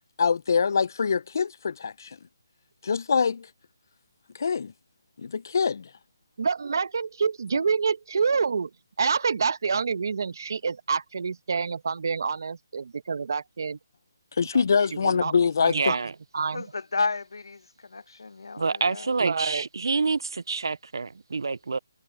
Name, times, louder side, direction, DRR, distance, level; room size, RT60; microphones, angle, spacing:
voice 1, 0.2-2.2 2.8-3.5 4.4-4.7 5.2-5.9 14.4-15.9, left 5 dB, 50° left, 0.5 m, -24 dB
voice 2, 6.4-8.7 9.0-13.8 14.5-14.6 15.0-15.3 15.6-16.0 16.3-16.6 19.2-19.6, right 5 dB, 55° right, 1.2 m, -27 dB
voice 3, 15.7-16.1 18.6-21.8, right 4 dB, 75° right, 0.3 m, -27 dB
voice 4, 16.5-19.1, left 4 dB, 80° left, 0.9 m, -32 dB
hypercardioid pair, 165°, 2 cm